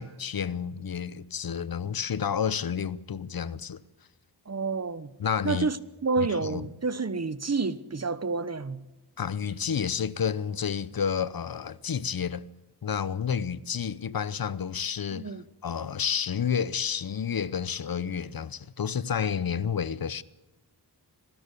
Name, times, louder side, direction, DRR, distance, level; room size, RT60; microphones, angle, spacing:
voice 1, 0.0-3.8 5.2-5.7 6.4-6.6 9.2-12.4 12.8-15.3 15.6-20.2, left 7 dB, 60° left, 0.9 m, -30 dB
voice 2, 4.5-5.1 5.4-8.8 15.1-15.5, right 4 dB, 40° right, 1.1 m, -29 dB
26.0 x 13.5 x 8.3 m
cardioid pair, 65°, 41 cm